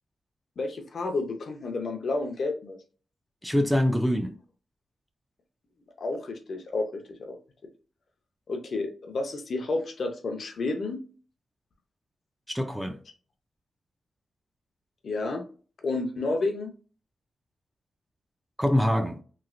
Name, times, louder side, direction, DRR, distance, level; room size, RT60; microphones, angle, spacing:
voice 1, 0.6-2.8 6.0-7.4 8.5-11.0 15.0-15.4 15.8-16.7, left 3 dB, 50° left, 0.6 m, -30 dB
voice 2, 3.4-4.3 12.5-13.0 18.6-19.2, left 1 dB, 5° right, 0.3 m, -24 dB
3.1 x 2.8 x 2.4 m
wide cardioid pair, 150°, 0 cm